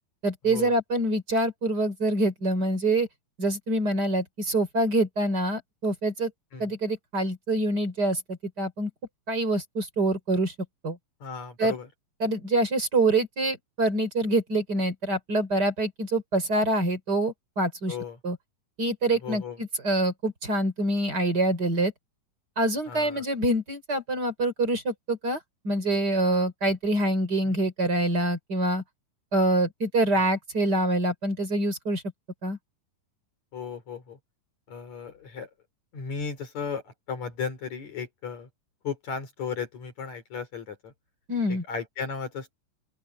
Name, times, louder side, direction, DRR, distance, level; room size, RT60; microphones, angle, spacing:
voice 1, 0.2-3.1 3.4-6.3 6.6-8.9 9.3-10.5 10.8-11.0 11.6-11.7 12.2-17.9 18.2-18.4 18.8-21.9 22.6-25.4 25.6-28.8 29.3-32.0 32.4-32.6 41.3-41.6, right 1 dB, 30° right, 4.5 m, -25 dB
voice 2, 11.2-11.9 17.9-18.2 19.2-19.6 22.9-23.2 27.4-27.5 30.1-30.3 33.5-34.2 34.7-35.5 35.9-38.5 38.8-40.9 41.7-42.5, left 5 dB, 55° left, 5.0 m, -35 dB
open air
omnidirectional pair, 3.9 m